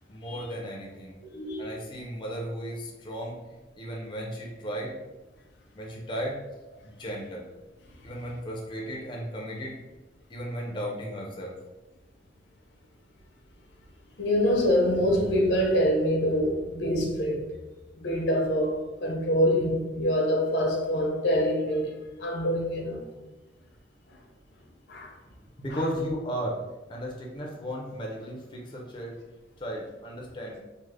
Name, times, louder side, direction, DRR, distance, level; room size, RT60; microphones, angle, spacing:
voice 1, 0.1-1.2 1.6-3.4 3.8-5.0 5.7-6.4 6.8-7.5 8.0-9.8 10.3-11.6 25.3-25.4 25.6-26.6 26.9-29.2 29.6-30.6, equal, 25° left, -2 dB, 0.5 m, -35 dB
voice 2, 1.3-1.7 14.2-17.4 18.0-23.1 24.9-25.1 25.7-25.8, equal, 80° left, 0 dB, 0.7 m, -25 dB
3.2 x 2.0 x 3.5 m, 1.1 s
head